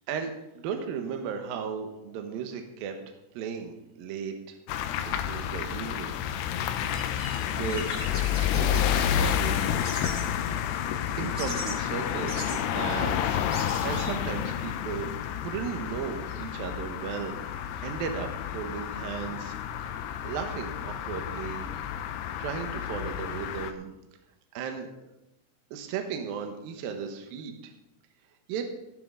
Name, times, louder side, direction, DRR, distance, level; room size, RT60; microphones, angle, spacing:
voice 1, 0.1-4.6 5.1-6.1 6.7-7.1 7.4-8.1 8.4-10.1 11.2-15.1 15.4-21.6 22.4-23.9 24.5-24.9 25.7-27.7 28.5-28.7, right 7 dB, 70° right, 5 dB, 2.6 m, -36 dB
sound 1, 4.7-23.7, left 9 dB, 80° left, 2.7 m, -30 dB
sound 2, 6.6-6.7 6.9-7.4 7.7-8.9 9.8-10.2 11.4-11.7 12.3-12.6 13.2-13.3 13.5-14.1, equal, 15° right, 5.8 m, -39 dB
16.0 x 9.4 x 3.8 m, 0.92 s
omnidirectional pair, 4.8 m